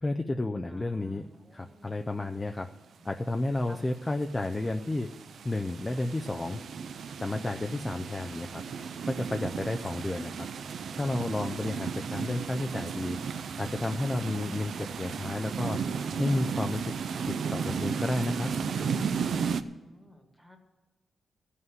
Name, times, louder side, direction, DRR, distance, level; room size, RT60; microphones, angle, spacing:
voice 1, 0.0-1.3 1.5-2.7 3.0-5.1 5.4-6.6 7.2-8.6 9.1-10.5 10.9-13.2 13.6-15.8 16.2-16.9 17.2-18.5, left 2 dB, 15° left, 4 dB, 0.4 m, -31 dB
voice 2, 0.7-2.0 3.2-3.8 19.5-20.6, equal, ahead, 4 dB, 1.4 m, -54 dB
sound 1, 3.6-19.6, right 6 dB, 60° right, 0.5 m, -35 dB
14.5 x 5.6 x 9.4 m, 1.2 s
wide cardioid pair, 175°, 0 cm